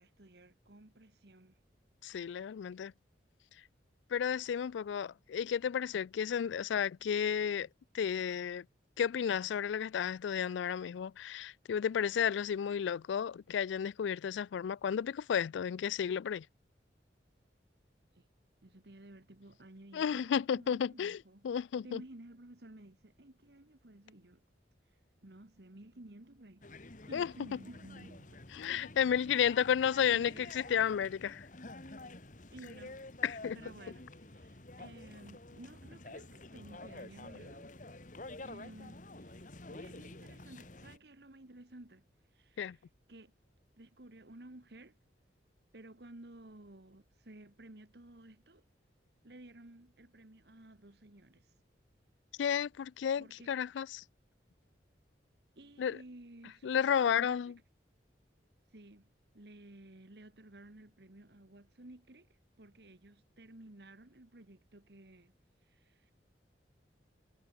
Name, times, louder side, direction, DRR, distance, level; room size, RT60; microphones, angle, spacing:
voice 1, 0.0-1.6 18.1-18.2 18.6-21.4 21.8-24.4 25.2-28.4 29.1-29.4 30.1-30.5 32.5-33.0 33.5-37.7 38.4-42.0 42.3-42.8 43.1-43.3 43.7-45.0 45.7-48.6 49.2-51.5 53.2-53.5 55.5-57.3 58.7-59.1 59.3-62.3 62.6-65.3 65.7-66.1, right 1 dB, 65° right, 1.6 m, -54 dB
voice 2, 2.0-2.9 4.1-7.7 7.9-8.7 9.0-16.5 19.9-22.0 27.1-27.6 28.5-31.5 33.2-33.6 42.6-42.8 52.4-54.0 55.8-56.0 56.6-57.5, left 8 dB, 80° left, 0.3 m, -32 dB
sound 1, 26.6-41.0, left 2 dB, 45° left, 1.9 m, -49 dB
head